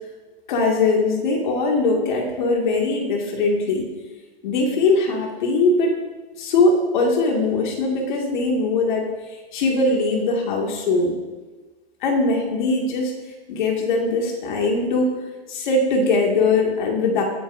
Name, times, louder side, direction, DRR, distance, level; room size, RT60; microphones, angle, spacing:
voice 1, 0.5-3.9 4.4-5.9 6.4-11.1 12.0-13.1 13.5-15.1 15.5-17.2, left 3 dB, 50° left, 0 dB, 2.3 m, -21 dB
21.0 x 9.9 x 2.7 m, 1.3 s
hypercardioid pair, 160°, 30 cm